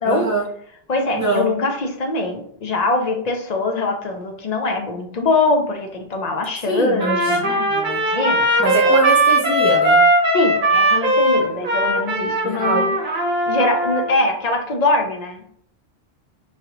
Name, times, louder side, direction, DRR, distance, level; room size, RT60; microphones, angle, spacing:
voice 1, 0.0-0.4 1.1-1.5 6.7-8.0 8.6-10.0 12.4-12.9, right 2 dB, 20° right, -4 dB, 0.5 m, -23 dB
voice 2, 0.9-7.7 8.1-9.0 10.3-13.0 13.5-15.4, left 2 dB, 50° left, 3 dB, 0.5 m, -22 dB
Trumpet, 7.0-14.1, right 1 dB, 50° right, 1.1 m, -18 dB
3.1 x 2.8 x 2.8 m, 0.64 s
omnidirectional pair, 1.1 m